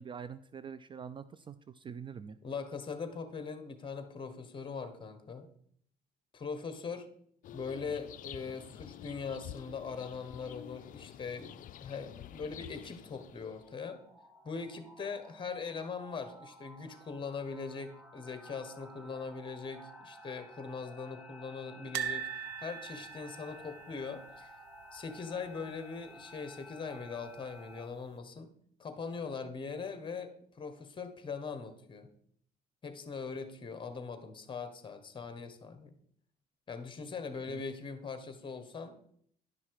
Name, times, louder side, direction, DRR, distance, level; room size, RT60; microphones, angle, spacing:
voice 1, 0.0-2.4 37.5-37.6, right 7 dB, 30° right, 15 dB, 0.3 m, -45 dB
voice 2, 2.4-5.5 6.3-7.1 7.5-11.5 11.8-14.0 14.4-22.3 22.6-24.5 24.9-28.5 28.8-32.1 32.8-35.9 36.7-39.0, left 5 dB, 30° left, 9 dB, 1.3 m, -41 dB
atmosphere-sunny-day-birds, 7.4-13.7, left 12 dB, 50° left, 0.4 m, -49 dB
sound 1, 13.6-27.9, left 1 dB, 5° right, 1.4 m, -53 dB
sound 2, 21.9-25.0 25.3-25.5 25.7-25.8 27.1-27.6 28.1-28.2, right 9 dB, 90° right, 0.6 m, -40 dB
11.0 x 5.7 x 4.8 m, 0.64 s
cardioid pair, 110°, 17 cm